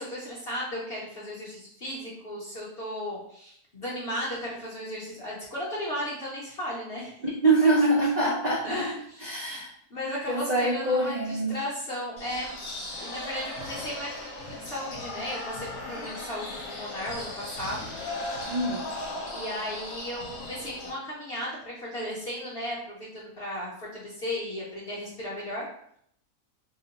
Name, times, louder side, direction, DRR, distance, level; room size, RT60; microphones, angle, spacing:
voice 1, 0.0-7.2 8.0-8.3 8.6-9.6 9.9-12.5 13.0-17.9 19.3-25.7, left 1 dB, 45° left, -8 dB, 1.0 m, -35 dB
voice 2, 7.2-8.9 9.2-9.7 10.3-11.6 18.5-18.8, right 2 dB, 70° right, -5 dB, 0.4 m, -24 dB
sound 1, 12.2-20.9, left 2 dB, 65° left, 1.3 m, -37 dB
2.9 x 2.0 x 4.0 m, 0.69 s
omnidirectional pair, 1.6 m